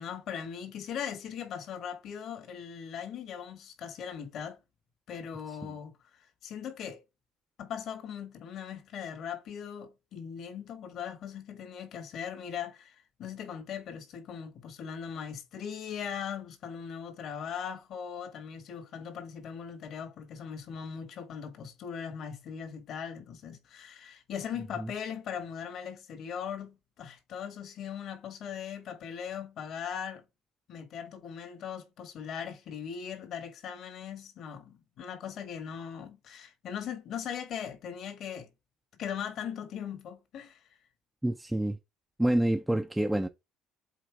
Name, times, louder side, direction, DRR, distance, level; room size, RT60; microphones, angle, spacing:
voice 1, 0.0-4.6 5.1-7.0 7.6-30.2 30.7-38.5 39.0-40.6, left 8 dB, 55° left, 1.8 m, -39 dB
voice 2, 41.2-41.8 42.2-43.3, right 1 dB, 5° right, 0.5 m, -27 dB
7.9 x 4.1 x 3.6 m
cardioid pair, 130°, 0 cm